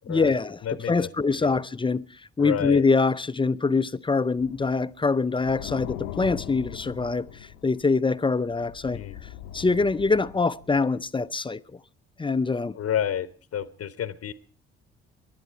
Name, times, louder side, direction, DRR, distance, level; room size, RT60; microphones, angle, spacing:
voice 1, 0.1-0.6 0.9-2.0 2.4-7.3 7.6-9.0 9.5-11.6 12.2-12.8, left 4 dB, 15° left, 0.6 m, -24 dB
voice 2, 0.6-1.1 1.4-1.6 2.4-2.8 8.9-9.2 12.7-14.3, left 9 dB, 50° left, 1.0 m, -30 dB
sound 1, 4.4-8.1 8.5-11.1, left 12 dB, 80° left, 0.9 m, -40 dB
23.0 x 11.0 x 4.5 m
hypercardioid pair, 50°, 31 cm